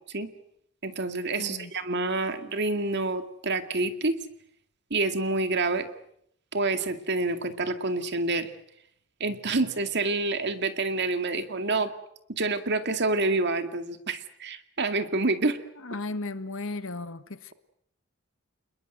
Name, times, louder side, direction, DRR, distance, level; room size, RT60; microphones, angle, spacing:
voice 1, 0.8-4.2 4.9-5.9 6.5-8.5 9.2-11.9 12.3-15.6, right 3 dB, 55° right, 2.2 m, -27 dB
voice 2, 1.4-1.7 15.8-17.5, left 2 dB, 65° left, 1.6 m, -35 dB
28.5 x 21.0 x 8.0 m
head